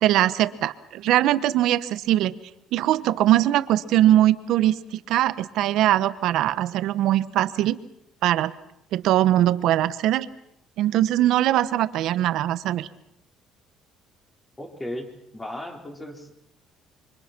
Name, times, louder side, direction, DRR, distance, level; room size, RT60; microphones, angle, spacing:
voice 1, 0.0-2.3 2.7-7.8 8.2-8.5 8.9-10.3 10.8-12.9, right 13 dB, 75° right, 14 dB, 1.0 m, -21 dB
voice 2, 14.6-15.1 15.3-16.3, left 1 dB, 15° left, 2 dB, 4.2 m, -35 dB
26.0 x 24.0 x 6.1 m, 0.77 s
cardioid pair, 110°, 0 cm